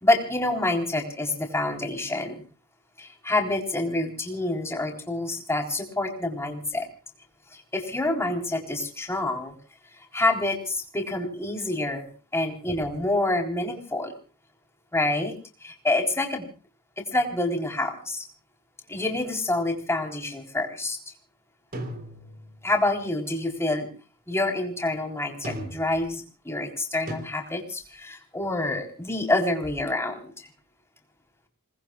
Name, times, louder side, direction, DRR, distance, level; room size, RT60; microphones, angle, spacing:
voice 1, 0.0-2.4 3.0-6.9 7.5-9.5 10.1-12.1 12.3-14.1 14.9-15.3 15.6-16.5 17.0-18.3 18.9-21.0 22.6-23.9 24.3-30.5, left 2 dB, 10° left, 2 dB, 3.8 m, -27 dB
sound 1, 21.7-22.7 25.4-26.1 27.1-27.2, right 1 dB, 45° right, 3.8 m, -36 dB
29.0 x 20.0 x 2.4 m, 0.37 s
head